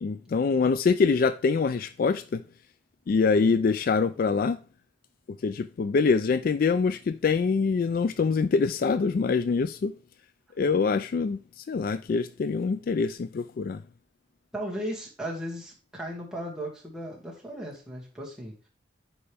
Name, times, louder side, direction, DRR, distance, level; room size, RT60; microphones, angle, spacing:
voice 1, 0.0-2.4 3.1-4.6 5.4-9.9 10.6-11.4 11.7-13.8, left 5 dB, 50° left, 0.3 m, -24 dB
voice 2, 14.5-18.5, equal, 5° right, 2.3 m, -36 dB
8.6 x 5.6 x 3.5 m
head